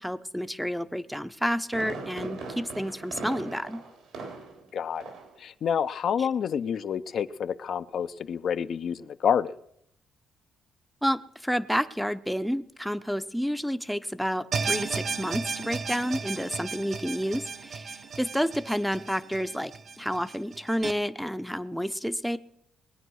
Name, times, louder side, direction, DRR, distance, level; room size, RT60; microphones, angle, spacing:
voice 1, 0.0-3.8 6.2-6.3 11.0-19.7 20.0-22.4, equal, ahead, 13 dB, 0.6 m, -30 dB
Fireworks, 1.2-4.7 5.0-5.4 5.7-5.8, right 3 dB, 80° right, 3.6 m, -40 dB
voice 2, 4.7-5.0 5.4-9.5, left 8 dB, 60° left, 11 dB, 0.5 m, -28 dB
sound 1, 14.5-20.9, right 5 dB, 45° right, 0.9 m, -34 dB
20.5 x 9.2 x 6.3 m, 0.74 s
cardioid pair, 90°, 0 cm